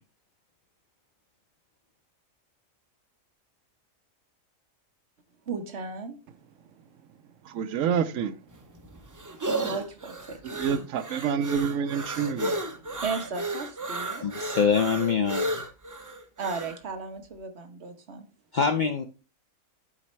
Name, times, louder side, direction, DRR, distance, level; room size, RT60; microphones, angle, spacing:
voice 1, 5.5-6.2 9.6-10.8 13.0-14.2 16.4-18.2, right 4 dB, 55° right, 1.2 m, -35 dB
voice 2, 7.5-8.3 10.6-12.6, right 7 dB, 70° right, 0.9 m, -27 dB
sound 1, 8.5-16.8, right 1 dB, 25° right, 0.4 m, -33 dB
voice 3, 14.2-15.7 18.5-19.0, left 6 dB, 70° left, 0.4 m, -25 dB
11.5 x 4.3 x 3.1 m
omnidirectional pair, 1.4 m